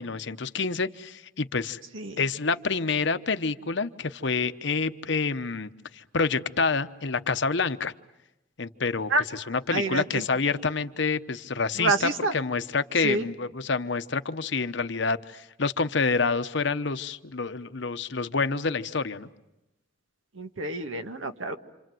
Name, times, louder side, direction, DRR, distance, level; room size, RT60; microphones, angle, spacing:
voice 1, 0.0-1.8 2.2-7.9 8.6-19.3, left 4 dB, 60° left, 10 dB, 1.0 m, -28 dB
voice 2, 9.7-10.0 11.8-12.3 13.0-13.2 20.4-21.6, right 2 dB, 80° right, 7 dB, 1.8 m, -27 dB
28.5 x 27.0 x 7.8 m, 0.93 s
head